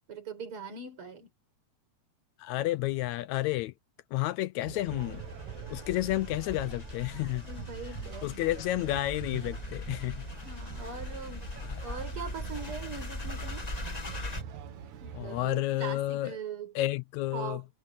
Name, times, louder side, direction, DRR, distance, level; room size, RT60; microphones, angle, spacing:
voice 1, 0.1-1.3 7.4-8.3 10.4-11.5 11.8-13.7 15.0-16.7 17.3-17.7, right 5 dB, 45° right, 5.8 m, -41 dB
voice 2, 2.4-3.7 4.1-5.2 5.7-7.4 8.2-10.2 15.1-16.4 16.8-17.6, left 16 dB, 80° left, 1.8 m, -31 dB
sound 1, 4.6-15.4, right 8 dB, 75° right, 2.9 m, -44 dB
sound 2, 4.8-14.4, left 2 dB, 50° left, 0.4 m, -41 dB
omnidirectional pair, 3.5 m